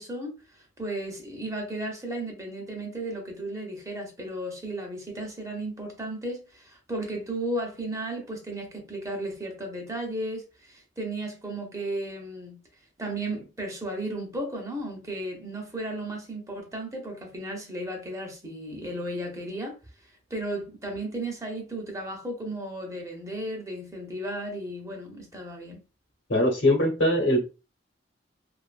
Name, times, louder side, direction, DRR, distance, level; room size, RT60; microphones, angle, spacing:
voice 1, 0.0-12.6 13.0-19.8 20.3-25.8, right 1 dB, 15° right, 0.8 m, -34 dB
voice 2, 26.3-27.5, left 1 dB, 80° left, 1.1 m, -22 dB
2.6 x 2.4 x 2.4 m
head